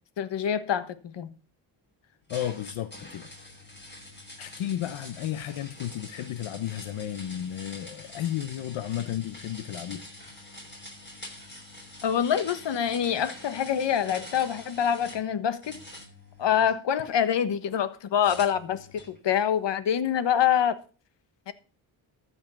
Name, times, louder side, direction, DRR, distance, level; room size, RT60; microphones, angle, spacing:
voice 1, 0.2-1.3 12.0-15.8 16.4-20.8 21.5-21.6, left 9 dB, 65° left, 1.4 m, -26 dB
voice 2, 2.3-3.3 4.4-10.1, left 11 dB, 90° left, 0.9 m, -33 dB
sound 1, 2.3-15.2 15.6-17.1 18.2-19.2, left 1 dB, 20° left, 6.0 m, -45 dB
14.0 x 5.7 x 7.0 m
cardioid pair, 85°, 46 cm